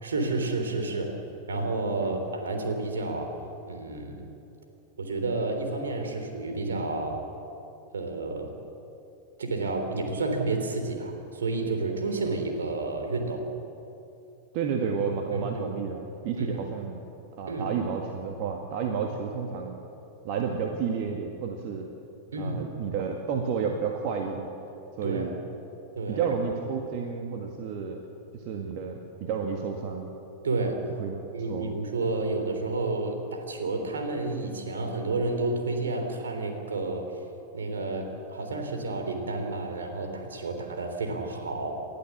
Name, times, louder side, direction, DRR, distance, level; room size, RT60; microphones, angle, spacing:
voice 1, 0.0-1.1 1.5-3.3 3.7-4.3 5.0-7.2 7.9-8.5 9.4-13.4 15.3-15.7 16.4-16.6 17.5-17.7 22.3-22.6 25.0-25.3 26.0-26.2 30.4-30.8 31.3-37.0 37.5-41.8, right 3 dB, 70° right, 4 dB, 3.4 m, -30 dB
voice 2, 14.5-17.0 17.4-19.8 20.2-21.9 22.4-24.5 25.0-25.3 26.1-28.0 28.3-30.1 31.0-31.2 31.5-31.7, right 6 dB, 45° right, 2 dB, 1.8 m, -31 dB
29.0 x 12.5 x 7.4 m, 2.8 s
figure-of-eight pair, 90°, 0 cm